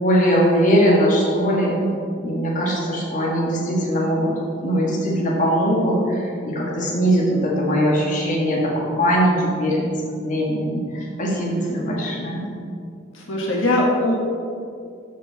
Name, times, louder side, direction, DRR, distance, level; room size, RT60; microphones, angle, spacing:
voice 1, 0.0-1.8 2.2-4.3 4.6-10.0 10.2-12.4, equal, 40° left, -4 dB, 1.7 m, -20 dB
voice 2, 13.1-14.1, left 1 dB, 80° left, -2 dB, 1.5 m, -20 dB
13.0 x 4.7 x 4.1 m, 2.4 s
head